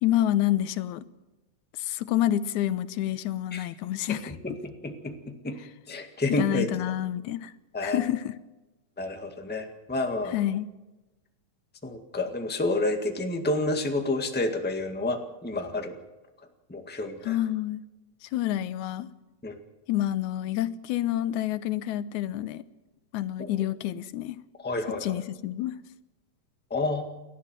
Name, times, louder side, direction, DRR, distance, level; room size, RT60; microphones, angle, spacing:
voice 1, 0.0-1.0 1.8-4.3 6.4-7.5 7.8-8.4 10.2-10.7 17.2-17.8 18.2-19.1 19.9-22.6 23.1-24.4 24.9-25.8, left 13 dB, 90° left, 2.2 m, -28 dB
voice 2, 4.1-5.6 5.9-6.7 7.7-8.0 9.0-10.3 11.8-15.9 16.7-17.3 19.4-19.6 24.6-25.0 26.7-27.0, left 2 dB, 5° left, 1.2 m, -29 dB
29.5 x 12.5 x 7.5 m
omnidirectional pair, 3.3 m